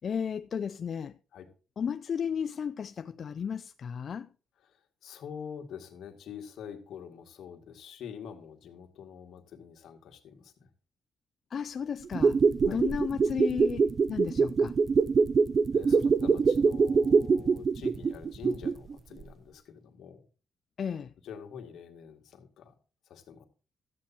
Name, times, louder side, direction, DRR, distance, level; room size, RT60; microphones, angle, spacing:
voice 1, 0.0-1.2 1.8-4.3 11.5-12.4 12.7-14.8 20.8-21.1, left 7 dB, 50° left, 0.4 m, -34 dB
voice 2, 4.6-10.7 12.6-12.9 15.7-20.2 21.2-22.7 23.1-23.4, left 7 dB, 75° left, 2.1 m, -45 dB
sound 1, 12.0-18.9 19.2-19.3, right 5 dB, 45° right, 0.4 m, -24 dB
13.0 x 8.5 x 4.3 m
cardioid pair, 90°, 0 cm